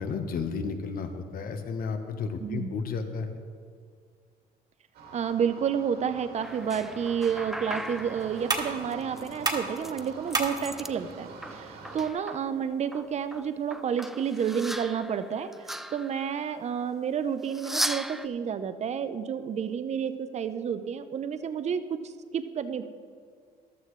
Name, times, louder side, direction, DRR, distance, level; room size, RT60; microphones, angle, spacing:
voice 1, 0.0-3.3, left 5 dB, 60° left, 6 dB, 1.2 m, -32 dB
voice 2, 2.4-2.8 5.1-22.8, right 7 dB, 40° right, 10 dB, 0.7 m, -30 dB
sound 1, 4.9-12.1, right 3 dB, 75° right, 2.3 m, -45 dB
sound 2, 6.4-10.9 11.3-12.5 12.9-16.6 17.4-18.3, right 1 dB, ahead, 0.3 m, -38 dB
sound 3, 7.0-14.0, right 3 dB, 25° right, 1.6 m, -37 dB
14.0 x 12.0 x 3.3 m, 2.1 s
cardioid pair, 110°, 17 cm